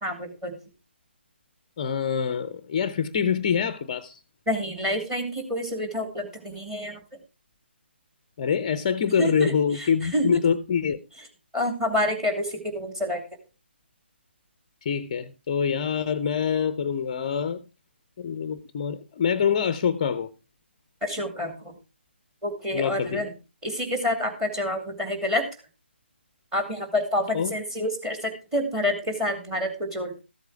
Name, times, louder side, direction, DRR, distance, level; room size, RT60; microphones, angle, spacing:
voice 1, 0.0-0.6 4.5-7.0 9.2-10.4 11.5-13.2 21.0-21.7 22.4-23.3 23.6-25.5 26.5-30.2, left 1 dB, 10° right, 2.3 m, -28 dB
voice 2, 1.8-4.2 8.4-11.0 14.8-17.6 18.2-20.3 22.7-23.2 27.3-27.5, left 7 dB, 25° left, 0.7 m, -25 dB
14.0 x 8.2 x 4.6 m
figure-of-eight pair, 150°, 6 cm